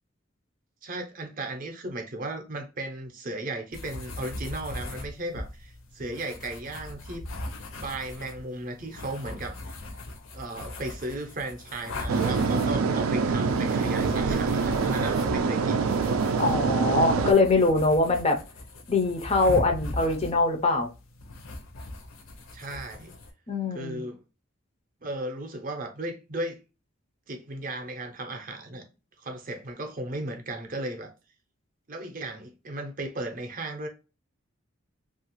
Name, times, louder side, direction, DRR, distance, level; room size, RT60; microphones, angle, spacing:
voice 1, 0.8-7.2 7.8-9.7 10.3-15.9 22.5-23.1 23.7-24.2 25.0-26.6 27.3-28.8 29.2-31.1 31.9-33.9, right 2 dB, 40° right, 0.5 m, -35 dB
sound 1, 3.7-23.3, left 1 dB, 70° left, 0.6 m, -40 dB
sound 2, 12.1-17.3, right 4 dB, 85° right, 0.4 m, -25 dB
voice 2, 16.4-18.4 18.9-20.9 23.5-24.0, left 3 dB, 30° left, 0.4 m, -23 dB
2.8 x 2.4 x 2.9 m
head